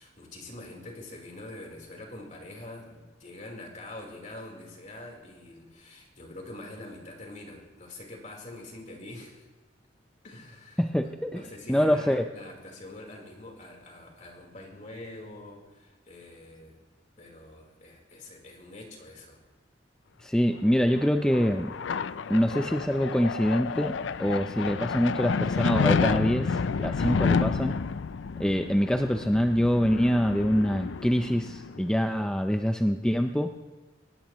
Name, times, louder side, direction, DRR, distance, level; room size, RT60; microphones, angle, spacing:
voice 1, 0.0-9.5 10.2-16.8 17.2-19.4, left 2 dB, 45° left, 0 dB, 4.0 m, -45 dB
voice 2, 10.8-11.4 11.7-12.3 20.2-21.7 22.3-27.8 28.4-33.5, equal, 5° left, 5 dB, 0.5 m, -25 dB
sound 1, 20.7-32.0, left 5 dB, 85° left, 0.5 m, -30 dB
24.0 x 19.5 x 3.1 m, 1.2 s
head